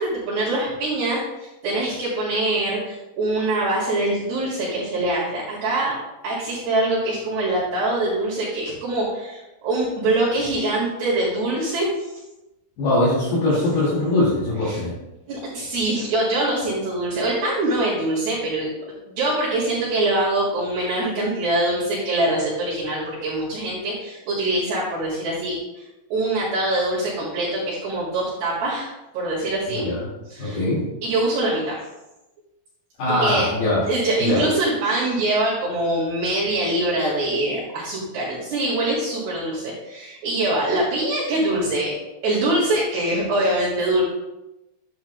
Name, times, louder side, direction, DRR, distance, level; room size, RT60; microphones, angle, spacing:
voice 1, 0.0-5.9 6.2-11.9 14.7-14.8 15.3-18.7 19.1-25.6 26.1-29.9 30.3-30.6 31.0-31.8 33.1-33.5 33.9-41.9 42.2-44.0, right 2 dB, 60° right, -8 dB, 3.7 m, -24 dB
voice 2, 12.8-14.9 29.7-30.1 30.4-30.8 33.0-33.8 34.2-34.4, left 2 dB, 60° left, -9 dB, 3.9 m, -21 dB
10.0 x 9.8 x 2.3 m, 0.98 s
omnidirectional pair, 5.7 m